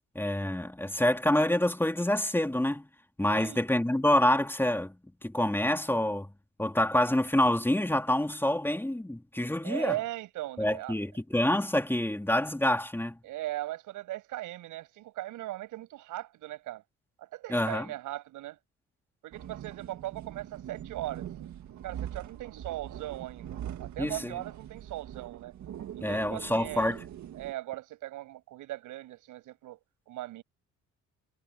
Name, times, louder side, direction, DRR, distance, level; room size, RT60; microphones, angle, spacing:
voice 1, 0.1-2.9 3.2-4.9 5.2-6.3 6.6-9.9 10.6-13.2 17.5-17.9 24.0-24.3 26.0-27.0, left 1 dB, 5° left, 3.0 m, -27 dB
voice 2, 9.6-10.9 13.2-16.8 17.2-18.6 19.2-21.3 21.8-25.5 25.9-27.0 27.3-29.8 30.1-30.4, right 15 dB, 90° right, 7.5 m, -39 dB
sound 1, 19.3-27.5, right 10 dB, 70° right, 1.9 m, -42 dB
cardioid pair, 90°, 30 cm